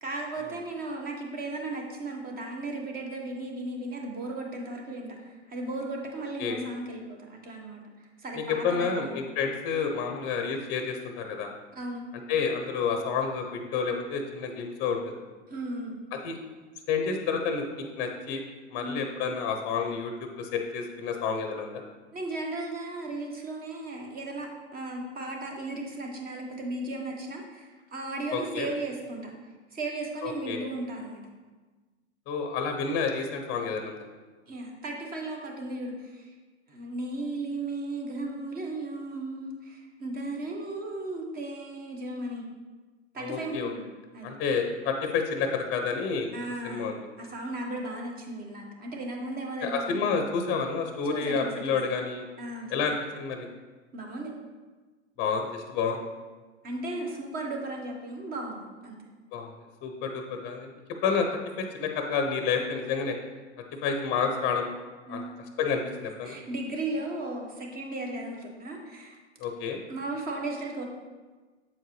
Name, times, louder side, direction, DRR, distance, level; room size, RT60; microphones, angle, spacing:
voice 1, 0.0-9.3 11.7-12.1 15.5-16.0 18.8-19.1 19.4-19.6 22.1-29.3 29.7-31.2 34.5-36.3 36.7-42.4 43.1-43.8 44.1-44.3 46.3-50.0 51.0-51.5 52.4-52.7 53.9-54.3 56.6-59.0 65.1-65.3 66.2-69.2 69.9-70.8, right 2 dB, 25° right, 1 dB, 1.2 m, -36 dB
voice 2, 8.3-11.5 12.3-15.2 16.2-16.4 16.9-18.4 18.7-21.7 28.3-28.7 30.2-30.6 32.3-34.1 43.2-43.7 44.2-46.3 46.6-47.0 49.6-52.3 52.7-53.5 55.2-56.1 59.3-59.5 59.8-60.7 61.0-61.3 61.6-63.2 63.8-64.7 65.1-65.2 65.6-66.4 69.4-69.8, left 5 dB, 30° left, 4 dB, 0.7 m, -29 dB
7.5 x 4.5 x 3.1 m, 1.3 s
hypercardioid pair, 105°, 35 cm